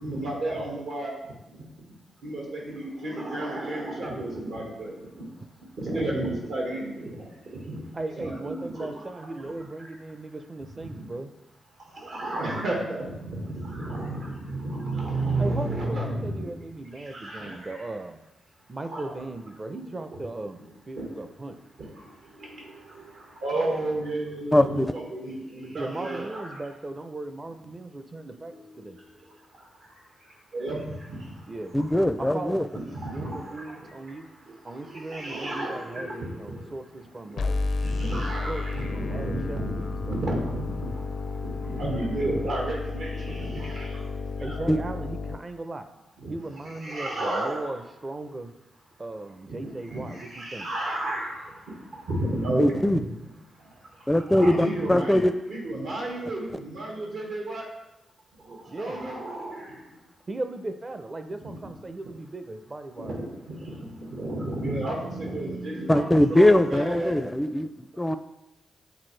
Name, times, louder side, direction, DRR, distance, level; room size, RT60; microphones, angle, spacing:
voice 1, 0.0-1.8 2.2-5.2 5.8-7.8 8.2-9.5 9.8-9.9 10.7-11.0 11.8-16.5 16.9-17.9 18.9-19.1 21.0-21.1 21.4-21.5 22.0-26.6 28.4-29.0 29.3-29.9 30.2-31.9 32.9-34.2 34.5-36.7 37.7-44.1 44.4-44.6 46.2-46.3 46.6-47.7 49.5-53.3 53.6-57.7 58.4-59.9 61.5-61.6 63.0-67.2, right 1 dB, 75° right, -1 dB, 1.8 m, -33 dB
voice 2, 7.9-11.3 15.4-18.2 18.7-21.6 25.7-29.0 31.5-31.7 32.2-34.3 34.6-37.5 38.5-38.6 38.9-40.2 44.4-45.9 46.3-48.5 49.0-50.7 58.7-59.1 60.3-63.2, right 2 dB, 35° right, 8 dB, 0.6 m, -37 dB
voice 3, 24.5-24.9 31.7-32.7 44.7-44.8 52.6-53.0 54.1-55.3 65.9-67.7 68.0-68.2, left 1 dB, 10° left, 11 dB, 0.4 m, -21 dB
sound 1, 37.4-45.4, left 3 dB, 75° left, 0.5 m, -32 dB
8.2 x 3.7 x 3.3 m, 0.98 s
cardioid pair, 55°, 0 cm